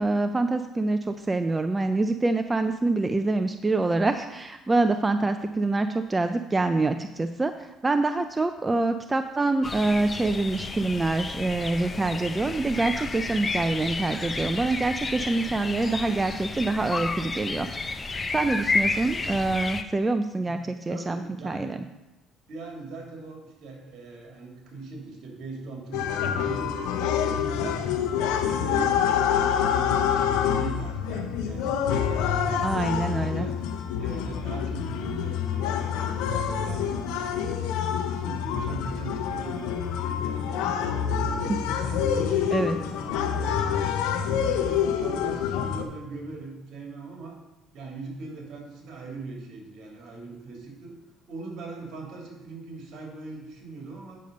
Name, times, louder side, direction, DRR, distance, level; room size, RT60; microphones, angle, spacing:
voice 1, 0.0-17.7 18.3-21.8 32.6-33.5 42.5-42.7, right 2 dB, 20° right, 8 dB, 0.4 m, -26 dB
sound 1, 9.6-19.8, left 3 dB, 25° left, 0.6 m, -31 dB
voice 2, 20.9-21.7 22.5-27.8 28.2-32.7 33.1-33.6 33.9-37.8 38.1-41.5 41.9-43.7 44.1-47.4 47.7-50.9 51.3-54.2, right 3 dB, 60° right, 0 dB, 2.9 m, -40 dB
sound 2, 25.9-45.8, left 8 dB, 85° left, 0.8 m, -27 dB
8.4 x 6.5 x 5.2 m, 1.0 s
cardioid pair, 100°, 0 cm